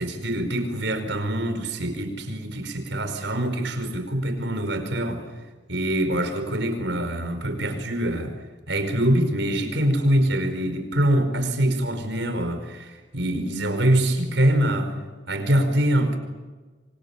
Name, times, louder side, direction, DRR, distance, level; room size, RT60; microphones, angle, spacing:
voice 1, 0.0-5.2 5.7-8.3 8.7-14.9 15.3-16.2, right 1 dB, 75° right, 7 dB, 4.9 m, -24 dB
27.5 x 25.0 x 8.4 m, 1.3 s
head